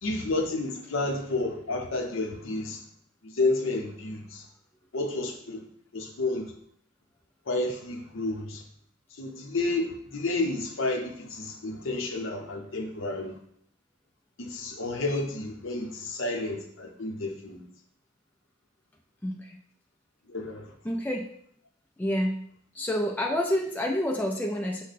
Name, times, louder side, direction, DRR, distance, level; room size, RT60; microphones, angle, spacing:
voice 1, 0.0-2.8 3.2-4.4 4.9-5.7 5.9-6.5 7.5-8.6 9.1-13.4 14.4-17.6 20.3-20.7, left 2 dB, 65° left, 2 dB, 0.7 m, -31 dB
voice 2, 19.2-19.6 20.8-21.3 22.0-22.4 22.7-24.8, equal, 10° left, 1 dB, 0.3 m, -28 dB
6.2 x 2.1 x 4.1 m, 0.66 s
head